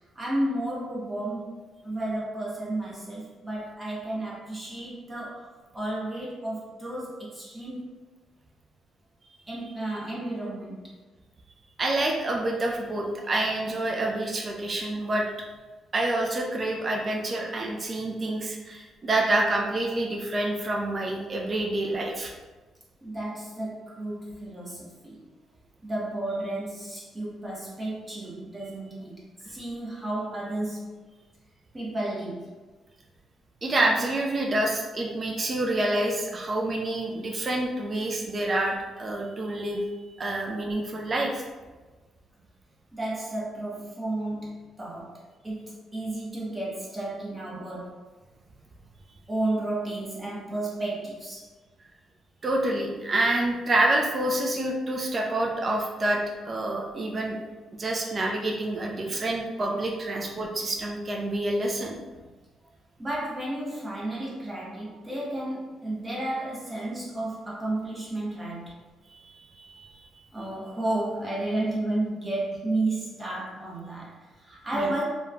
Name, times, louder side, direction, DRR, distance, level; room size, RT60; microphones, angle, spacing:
voice 1, 0.1-8.0 9.5-10.9 23.0-25.2 25.8-31.0 31.7-32.5 42.9-48.0 49.3-51.5 59.0-59.2 63.0-68.8 70.3-75.0, right 1 dB, 20° right, -5 dB, 0.9 m, -32 dB
voice 2, 11.8-15.3 15.9-22.3 33.6-39.8 40.2-41.4 52.4-57.4 57.8-62.0 69.1-70.0 74.7-74.9, right 1 dB, 35° right, -1 dB, 0.4 m, -27 dB
3.0 x 2.2 x 2.4 m, 1.2 s
cardioid pair, 90°, 0 cm